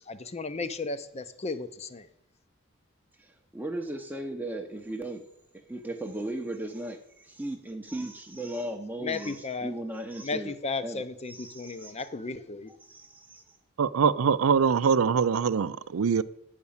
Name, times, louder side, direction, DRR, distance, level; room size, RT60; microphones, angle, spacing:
voice 1, 0.0-2.1 9.0-9.7 10.2-12.7, left 4 dB, 30° left, 12 dB, 0.6 m, -34 dB
voice 2, 3.2-5.2 5.7-10.5 10.8-12.0 12.8-13.4, right 1 dB, 10° right, 3 dB, 0.7 m, -37 dB
voice 3, 13.8-16.2, right 6 dB, 90° right, 16 dB, 0.4 m, -23 dB
9.5 x 5.1 x 7.2 m, 0.80 s
head